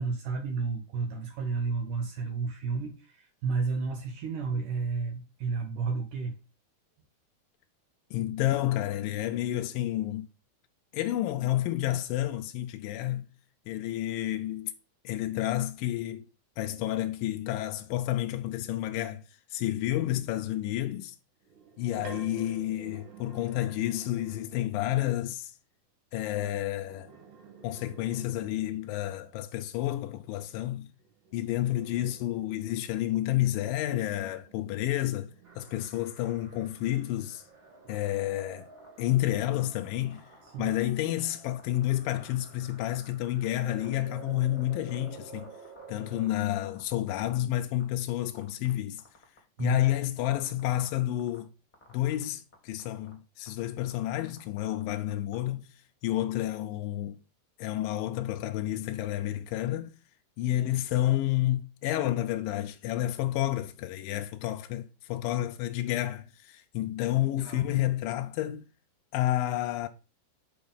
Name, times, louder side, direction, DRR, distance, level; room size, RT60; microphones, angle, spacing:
voice 1, 0.0-6.3 40.4-40.8 49.6-50.0 67.4-67.7, right 4 dB, 65° right, 2.4 m, -32 dB
voice 2, 8.1-10.3 10.9-13.3 13.7-14.7 15.1-16.2 16.6-19.2 19.5-21.2 21.8-25.5 26.1-27.1 27.6-30.9 31.3-35.3 35.6-37.4 37.9-38.7 39.0-40.2 40.6-45.5 45.9-49.0 49.6-51.5 51.9-55.7 56.0-57.2 57.6-59.9 60.4-68.6 69.1-69.9, left 14 dB, 85° left, 2.0 m, -30 dB
sound 1, 21.4-24.8 26.7-29.0 31.0-36.2 36.7-38.5, right 7 dB, 80° right, 3.5 m, -52 dB
sound 2, 35.4-46.3, right 4 dB, 40° right, 2.2 m, -51 dB
sound 3, 37.9-38.4 38.8-39.0 39.5-40.7 41.0-41.2 41.6-41.8 42.2-42.3 42.7-43.4 43.8-46.8 47.1-47.8 48.1-48.7 49.0-49.9 50.3-50.9 51.2-51.4 51.7-52.2 52.5-52.6 52.8-53.1 53.5-53.7 53.9-55.4, left 3 dB, 20° left, 1.3 m, -56 dB
6.8 x 5.1 x 5.4 m
omnidirectional pair, 4.7 m